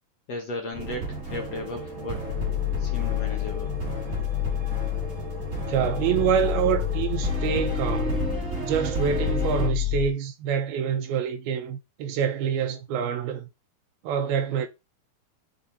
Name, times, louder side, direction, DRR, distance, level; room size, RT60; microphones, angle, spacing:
voice 1, 0.3-2.4 2.8-3.8, left 2 dB, 60° left, 1.8 m, -35 dB
sound 1, 0.7-9.7, right 2 dB, 30° right, 1.6 m, -33 dB
sound 2, 2.3-10.1, left 16 dB, 90° left, 1.9 m, -29 dB
voice 2, 5.7-8.3 8.6-13.5 14.0-14.7, right 8 dB, 80° right, 2.7 m, -26 dB
12.5 x 4.3 x 4.1 m
omnidirectional pair, 4.4 m